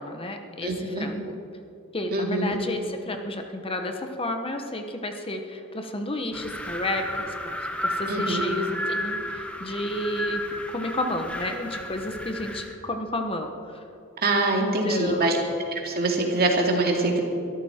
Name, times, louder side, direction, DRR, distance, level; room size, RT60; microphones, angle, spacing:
voice 1, 0.0-1.3 1.9-13.8 14.5-15.3, left 1 dB, 25° left, 5 dB, 1.1 m, -31 dB
voice 2, 0.6-1.1 2.1-2.6 8.1-8.4 14.2-15.4 15.8-17.2, right 2 dB, 45° right, 1 dB, 2.3 m, -24 dB
Wind, 6.3-12.7, left 1 dB, 5° left, 1.4 m, -32 dB
23.0 x 13.5 x 4.4 m, 2.6 s
head